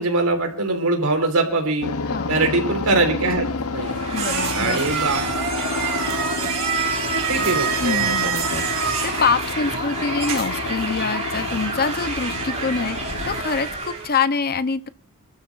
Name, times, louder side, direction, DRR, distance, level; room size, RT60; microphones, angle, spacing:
voice 1, 0.0-1.9 2.3-4.0 4.5-5.2 6.4-6.5 7.3-8.1, right 2 dB, 85° right, 4 dB, 4.2 m, -22 dB
sound 1, 1.8-13.4, left 4 dB, 85° left, 1.1 m, -30 dB
sound 2, 3.4-10.7, right 7 dB, 60° right, 4.3 m, -27 dB
sound 3, 3.8-14.2, right 4 dB, 30° right, 4.4 m, -30 dB
voice 2, 4.1-4.8 7.1-7.2 7.8-14.9, left 5 dB, 45° left, 13 dB, 0.8 m, -25 dB
29.0 x 13.0 x 2.5 m, 0.38 s
head